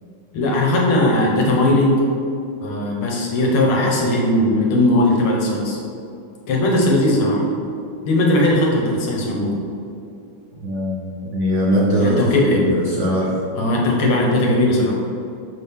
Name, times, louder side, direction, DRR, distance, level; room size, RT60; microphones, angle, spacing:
voice 1, 0.3-2.0 2.6-5.8 6.5-7.4 8.1-9.6 12.0-12.6 13.6-15.0, left 1 dB, 80° left, -2 dB, 2.1 m, -18 dB
voice 2, 10.6-13.4, equal, 50° right, -6 dB, 0.9 m, -21 dB
6.3 x 6.2 x 3.6 m, 2.5 s
omnidirectional pair, 2.3 m